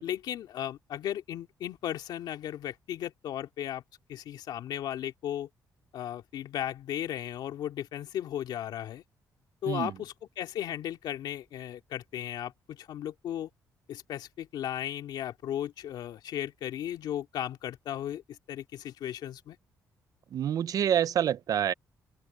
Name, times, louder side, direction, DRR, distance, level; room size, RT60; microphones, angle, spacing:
voice 1, 0.0-3.8 4.1-5.5 5.9-9.0 9.6-13.5 13.9-19.6, left 11 dB, 80° left, 2.4 m, -36 dB
voice 2, 20.3-21.7, right 9 dB, 55° right, 0.4 m, -27 dB
open air
cardioid pair, 115°, 7 cm